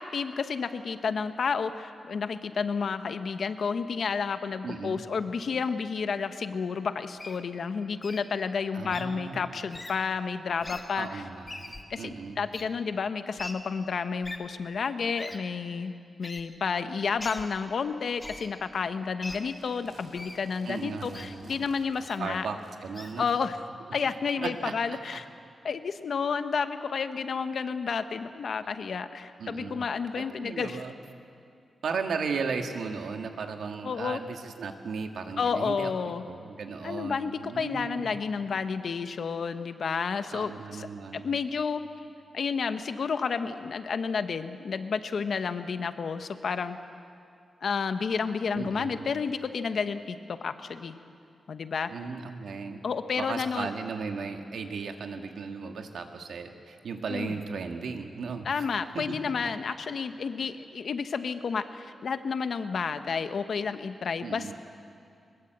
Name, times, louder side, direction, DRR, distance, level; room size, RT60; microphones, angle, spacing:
voice 1, 0.0-11.2 11.9-22.5 23.2-23.6 23.9-25.3 25.6-30.8 33.8-34.2 35.4-36.2 36.8-40.9 41.1-41.8 42.3-46.8 47.6-51.0 51.5-51.9 52.8-53.7 57.1-57.3 58.4-64.5, left 5 dB, 60° left, 9 dB, 1.1 m, -31 dB
voice 2, 4.6-5.0 8.7-9.6 11.0-12.4 20.6-21.6 22.2-23.3 24.4-25.2 29.4-29.8 30.1-31.0 31.8-38.2 40.3-41.4 48.5-49.1 51.9-52.8 53.2-59.5 64.2-64.5, right 5 dB, 80° right, 5 dB, 1.8 m, -36 dB
Wild animals, 7.2-7.4 8.0-8.2 8.9-9.0 9.7-9.9 10.6-10.8 11.5-11.8 12.5-12.6 13.4-13.5 14.2-14.4 15.2-15.4 16.2-16.4 17.2-17.4 18.2-18.5 19.2-19.4 20.1-20.4 21.1-21.3 22.0-22.2 22.9-23.1, left 2 dB, 15° left, 1.6 m, -40 dB
sound 1, 19.1-23.4, right 2 dB, 65° right, 5.5 m, -55 dB
22.5 x 21.0 x 8.0 m, 2.4 s
wide cardioid pair, 145°, 0 cm